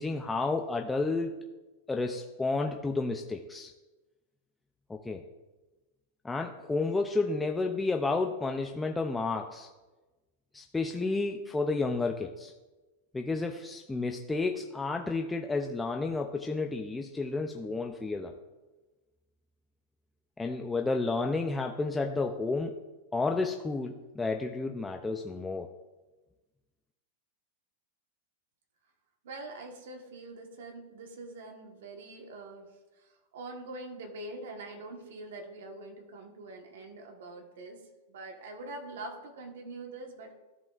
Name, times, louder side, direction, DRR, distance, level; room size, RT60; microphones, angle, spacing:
voice 1, 0.0-1.4 1.9-3.7 4.9-5.2 6.2-9.7 10.5-12.5 13.1-18.3 20.4-22.8 23.1-25.7, left 3 dB, 10° left, 3 dB, 0.4 m, -31 dB
voice 2, 29.2-32.7 33.0-37.8 38.1-40.3, right 2 dB, 75° right, 3 dB, 1.3 m, -44 dB
13.5 x 5.3 x 2.4 m, 1.2 s
supercardioid pair, 150°, 0 cm